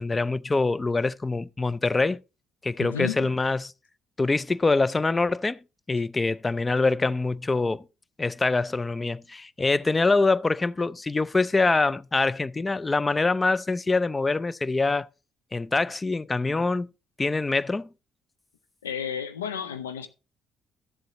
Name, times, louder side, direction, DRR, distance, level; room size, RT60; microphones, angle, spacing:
voice 1, 0.0-2.2 2.6-3.7 4.2-5.6 5.9-7.9 8.2-15.1 15.5-16.9 17.2-17.9, left 3 dB, 25° left, 0.4 m, -24 dB
voice 2, 2.8-3.3 18.8-20.1, left 8 dB, 85° left, 0.6 m, -32 dB
13.5 x 7.6 x 3.0 m
figure-of-eight pair, 45°, 0 cm